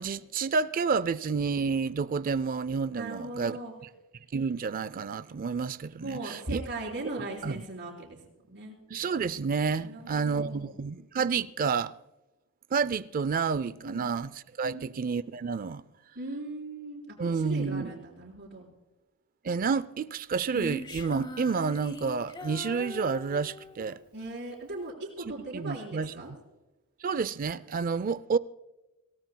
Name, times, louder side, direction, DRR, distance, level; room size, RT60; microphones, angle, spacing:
voice 1, 0.0-3.6 4.3-6.6 7.4-7.6 8.9-11.9 12.7-15.8 17.2-17.9 19.4-24.0 25.2-26.1 27.0-28.4, right 5 dB, 40° right, 0.4 m, -30 dB
voice 2, 2.9-3.7 6.0-8.2 8.5-8.8 9.8-10.7 13.8-14.1 14.6-14.8 16.2-18.7 24.1-26.3, right 2 dB, 55° right, 4.1 m, -38 dB
Female singing, 20.5-24.0, left 1 dB, 20° left, 0.8 m, -40 dB
26.5 x 17.5 x 2.2 m
head